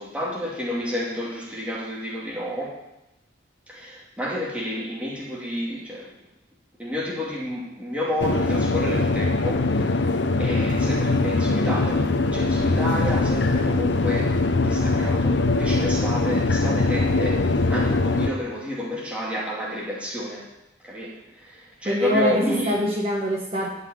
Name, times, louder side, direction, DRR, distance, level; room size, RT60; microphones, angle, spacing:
voice 1, 0.0-2.8 3.7-6.1 6.8-9.9 10.4-12.1 12.3-20.4 20.8-21.2 21.4-22.7, equal, 5° right, -5 dB, 2.5 m, -30 dB
sound 1, 8.2-18.3, left 3 dB, 90° left, 0.8 m, -22 dB
voice 2, 21.8-23.7, left 1 dB, 35° right, -3 dB, 1.8 m, -23 dB
11.5 x 5.7 x 8.6 m, 0.91 s
head